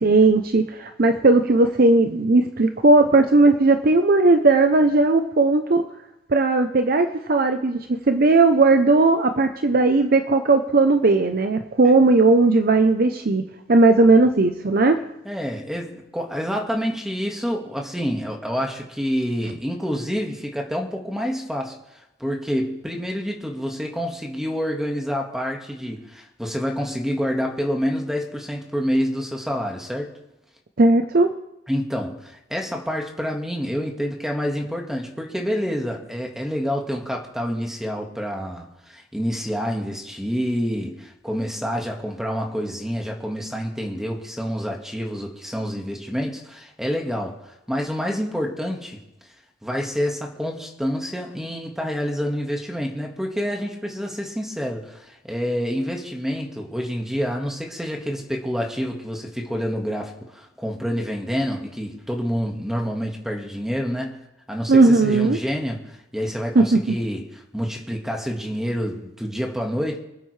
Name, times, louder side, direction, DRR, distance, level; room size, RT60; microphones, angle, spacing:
voice 1, 0.0-5.8 6.3-7.8 8.1-15.0 30.8-31.3 64.7-65.4 66.5-66.9, right 3 dB, 55° right, 7 dB, 0.7 m, -17 dB
voice 2, 15.2-30.1 31.7-49.0 49.6-64.2 64.5-70.0, equal, 5° right, 1 dB, 1.7 m, -28 dB
25.0 x 8.9 x 3.3 m, 0.93 s
head